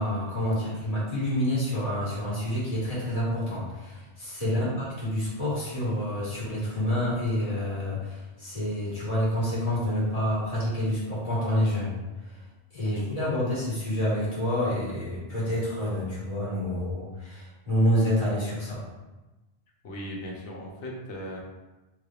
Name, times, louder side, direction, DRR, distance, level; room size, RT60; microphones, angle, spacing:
voice 1, 0.0-11.9 12.7-18.8, equal, 35° left, -9 dB, 1.4 m, -28 dB
voice 2, 19.8-21.4, equal, 90° left, -1 dB, 1.1 m, -37 dB
3.8 x 3.2 x 2.4 m, 1.1 s
omnidirectional pair, 1.1 m